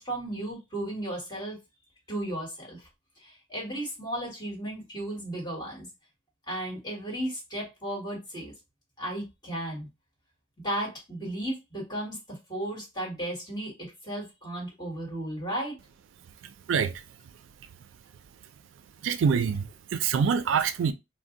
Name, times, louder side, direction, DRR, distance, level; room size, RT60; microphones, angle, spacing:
voice 1, 0.0-1.6 2.1-2.9 3.2-5.9 6.5-8.5 9.0-9.9 10.6-15.8, right 1 dB, 20° left, 1.5 m, -34 dB
voice 2, 16.7-17.0 19.0-20.9, right 6 dB, 80° right, 0.3 m, -25 dB
2.6 x 2.0 x 3.7 m
head